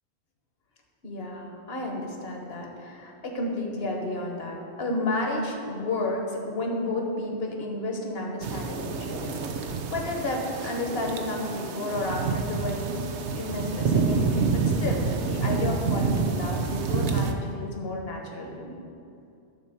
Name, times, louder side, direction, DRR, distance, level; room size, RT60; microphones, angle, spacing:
voice 1, 1.0-13.0 13.3-18.8, left 2 dB, 60° left, 1 dB, 1.5 m, -32 dB
sound 1, 8.4-17.3, right 4 dB, 85° right, 1.0 m, -28 dB
12.0 x 4.3 x 6.9 m, 2.6 s
omnidirectional pair, 1.1 m